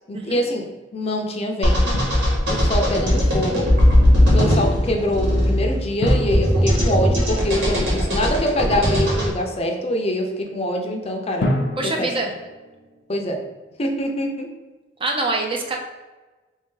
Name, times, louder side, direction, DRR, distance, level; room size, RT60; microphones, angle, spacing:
voice 1, 0.1-0.6 0.9-1.9 2.5-3.6 4.3-11.5 12.0-12.1 13.1-13.4 13.8-14.5, equal, 35° left, 2 dB, 0.5 m, -24 dB
sound 1, 1.6-9.3, equal, 70° right, 1.4 m, -18 dB
Drum, 1.9-3.0 6.0-7.8 11.4-13.4, left 1 dB, 80° left, 0.5 m, -29 dB
voice 2, 11.8-12.3 15.0-15.8, right 2 dB, 30° right, 1 dB, 0.5 m, -25 dB
3.5 x 2.7 x 3.7 m, 1.2 s
head